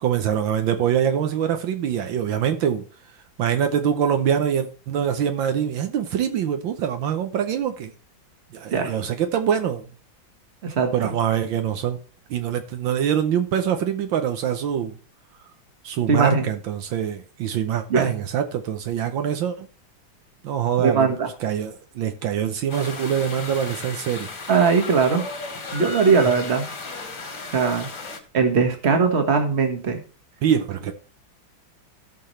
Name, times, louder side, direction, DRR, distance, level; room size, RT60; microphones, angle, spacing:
voice 1, 0.0-2.8 3.4-7.9 8.5-9.9 10.9-12.0 12.3-15.0 15.8-19.7 20.4-21.1 21.4-24.3 30.4-30.9, right 9 dB, 75° right, 7 dB, 1.6 m, -24 dB
voice 2, 10.6-10.9 16.1-16.5 17.9-18.1 20.8-21.3 24.5-25.2 25.7-26.7 27.5-27.9 28.3-30.0, right 5 dB, 35° right, 5 dB, 1.7 m, -20 dB
sound 1, 22.7-28.2, left 3 dB, 65° left, 2.9 m, -35 dB
17.0 x 5.8 x 3.2 m, 0.37 s
omnidirectional pair, 2.1 m